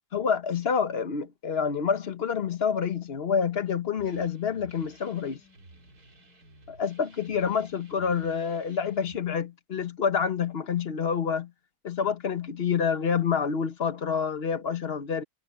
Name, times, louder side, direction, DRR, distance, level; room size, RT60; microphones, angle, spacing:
voice 1, 0.1-5.4 6.7-11.5 11.8-15.2, left 6 dB, 45° left, 1.2 m, -28 dB
sound 1, 4.0-9.2, right 2 dB, 80° right, 3.5 m, -54 dB
omnidirectional pair, 1.6 m